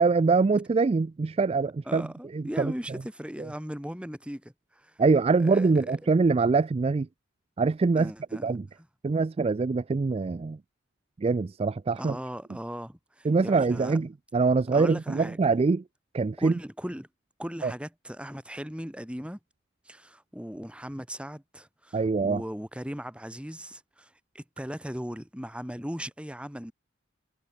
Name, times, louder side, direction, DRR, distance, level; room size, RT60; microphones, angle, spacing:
voice 1, 0.0-2.7 3.4-3.5 5.0-7.1 7.6-8.1 8.4-8.7 9.0-10.6 11.2-12.2 13.2-15.8 16.1-16.5 17.6-17.7 21.9-22.4, right 4 dB, 30° right, 0.3 m, -24 dB
voice 2, 1.9-5.0 5.4-6.0 8.0-8.5 12.0-14.0 14.7-15.4 16.4-17.1 17.4-19.4 19.8-26.7, equal, 5° right, 2.7 m, -38 dB
head